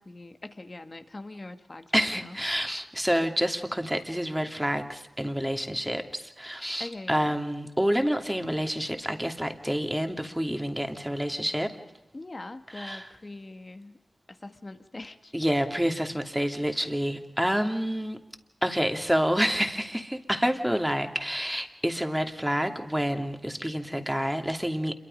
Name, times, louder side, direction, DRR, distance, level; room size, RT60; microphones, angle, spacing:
voice 1, 0.0-2.4 6.8-7.4 12.1-14.0 14.3-15.3, left 2 dB, 40° left, 8 dB, 1.9 m, -42 dB
voice 2, 1.9-11.7 12.7-13.1 15.3-18.2 18.6-24.9, equal, 5° right, 5 dB, 2.7 m, -28 dB
27.5 x 23.5 x 5.4 m, 0.94 s
cardioid pair, 40°, 0 cm